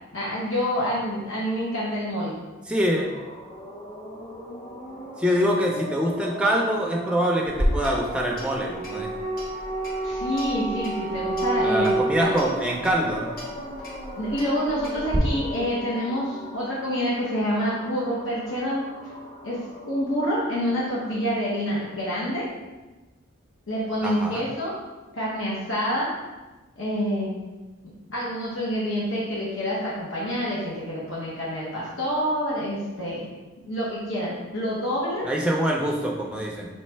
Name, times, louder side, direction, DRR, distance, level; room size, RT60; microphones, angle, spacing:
voice 1, 0.1-2.3 5.3-5.4 10.0-12.4 14.2-18.8 19.4-19.6 19.9-22.4 23.7-24.8 25.1-26.1 26.8-27.3 27.8-33.3 33.6-35.3, equal, 70° left, -7 dB, 0.9 m, -27 dB
voice 2, 2.7-3.1 5.2-9.1 11.6-13.4 24.0-24.4 35.2-36.7, equal, 5° right, -1 dB, 0.4 m, -25 dB
sound 1, 3.0-22.4, right 1 dB, 25° left, 0.9 m, -34 dB
Clock, 7.5-15.2, equal, 45° left, 1.3 m, -34 dB
3.2 x 3.1 x 4.4 m, 1.2 s
head